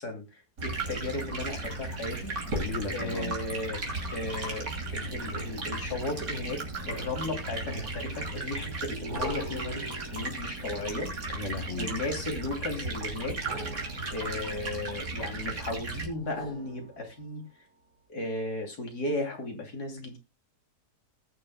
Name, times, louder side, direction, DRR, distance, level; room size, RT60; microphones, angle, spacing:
voice 1, 0.0-2.4 2.9-3.8 4.1-11.1 11.7-13.4 14.1-17.4 18.1-20.2, left 2 dB, 70° left, 3.4 m, -35 dB
Stream, 0.6-16.1, right 2 dB, 60° right, 3.3 m, -36 dB
voice 2, 2.5-3.4 11.3-11.9, left 4 dB, 50° left, 1.4 m, -35 dB
sound 1, 2.5-7.1 7.8-8.4 9.1-12.1 13.3-15.4 16.1-17.5 18.0-18.1, right 1 dB, 75° right, 4.3 m, -43 dB
19.5 x 6.8 x 2.2 m
omnidirectional pair, 1.7 m